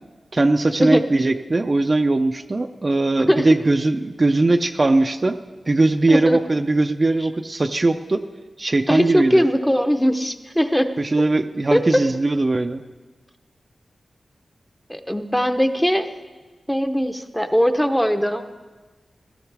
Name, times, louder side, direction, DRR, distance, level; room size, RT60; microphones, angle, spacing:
voice 1, 0.3-5.4 5.7-8.2 8.6-9.4 11.0-12.8, right 2 dB, 35° right, 7 dB, 0.5 m, -20 dB
voice 2, 6.1-6.4 8.9-10.9 11.7-11.8 14.9-16.1 16.7-18.4, equal, 5° left, 8 dB, 0.7 m, -19 dB
16.5 x 13.5 x 3.4 m, 1.3 s
wide cardioid pair, 90°, 0 cm